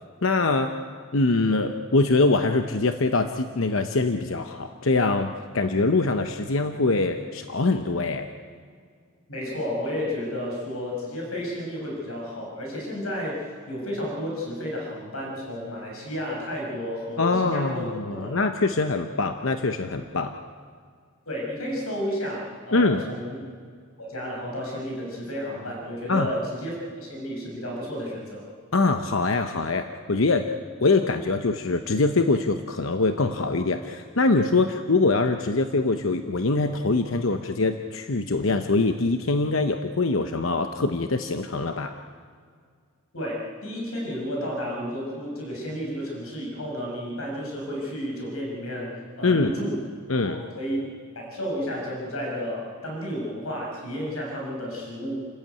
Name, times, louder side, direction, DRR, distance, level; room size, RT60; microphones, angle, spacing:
voice 1, 0.2-0.8 1.1-8.3 17.2-20.3 22.7-23.0 26.1-26.3 28.7-30.5 30.8-42.0 49.2-49.5 50.1-50.4, left 3 dB, 65° left, 7 dB, 0.9 m, -23 dB
voice 2, 9.3-18.3 21.3-23.4 24.0-28.5 43.1-49.8 50.1-50.8 51.1-55.1, equal, 80° left, -1 dB, 6.2 m, -32 dB
29.5 x 14.0 x 9.2 m, 2.1 s
head